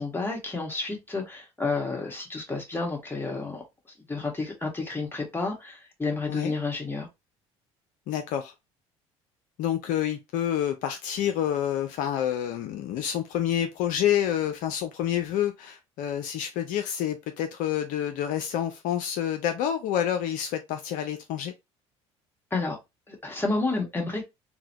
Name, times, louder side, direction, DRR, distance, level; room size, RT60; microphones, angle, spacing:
voice 1, 0.0-3.6 4.1-7.1 22.5-22.8 23.1-24.2, left 3 dB, 15° left, 1.6 m, -30 dB
voice 2, 8.1-8.5 9.6-21.5, left 10 dB, 60° left, 0.5 m, -28 dB
3.8 x 2.1 x 2.8 m
hypercardioid pair, 65°, 15 cm